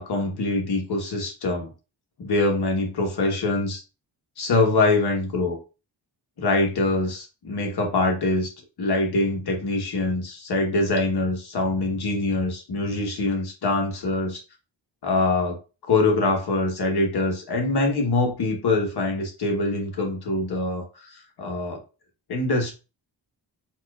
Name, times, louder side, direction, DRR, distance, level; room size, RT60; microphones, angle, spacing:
voice 1, 0.0-1.7 2.2-3.8 4.4-5.6 6.4-8.5 8.8-14.4 15.0-15.6 15.9-20.8 21.4-21.8 22.3-22.7, left 2 dB, 60° left, 2 dB, 1.2 m, -24 dB
4.3 x 2.5 x 2.3 m, 0.31 s
wide cardioid pair, 100°, 43 cm